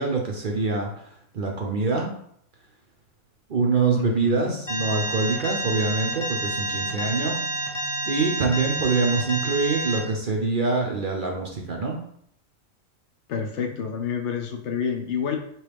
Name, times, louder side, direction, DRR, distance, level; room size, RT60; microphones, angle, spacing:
voice 1, 0.0-2.1 3.5-7.4 8.1-12.0, right 4 dB, 55° right, 0 dB, 0.6 m, -25 dB
voice 2, 3.9-4.6 13.3-15.4, left 6 dB, 70° left, 4 dB, 0.9 m, -28 dB
Alarm, 4.7-10.0, right 1 dB, 20° left, 0.7 m, -29 dB
4.6 x 3.0 x 3.3 m, 0.68 s
omnidirectional pair, 1.3 m